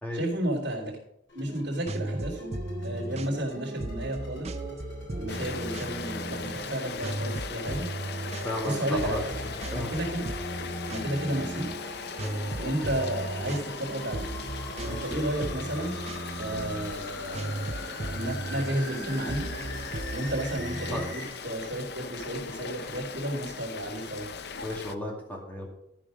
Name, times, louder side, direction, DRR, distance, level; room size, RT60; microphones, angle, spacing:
voice 1, 0.1-1.0 1.3-2.5 2.8-4.5 5.1-7.9 8.6-9.3 9.7-10.3 10.8-11.7 12.6-14.3 14.8-16.0 16.4-19.5 20.1-24.3, right 1 dB, 65° right, -6 dB, 3.0 m, -32 dB
sound 1, 1.3-21.3, left 1 dB, 85° left, 4.8 m, -44 dB
sound 2, 1.5-21.1, right 2 dB, 35° right, 0.6 m, -37 dB
Rain, 5.3-24.9, left 5 dB, 60° left, 0.6 m, -39 dB
voice 2, 8.4-9.9 12.2-12.4 14.8-15.2 20.9-21.1 24.6-25.7, left 1 dB, 10° left, -1 dB, 2.3 m, -35 dB
13.5 x 5.0 x 6.2 m, 0.77 s
head